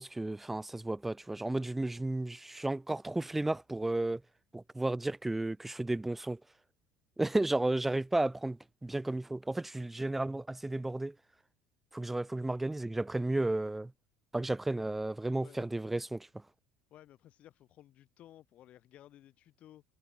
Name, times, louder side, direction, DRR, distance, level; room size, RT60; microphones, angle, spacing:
voice 1, 0.0-4.2 4.5-6.4 7.2-11.1 11.9-13.9 14.3-16.3, right 2 dB, 5° right, 0.5 m, -33 dB
voice 2, 16.9-19.8, left 12 dB, 40° left, 2.1 m, -56 dB
cardioid pair, 155°, 3 cm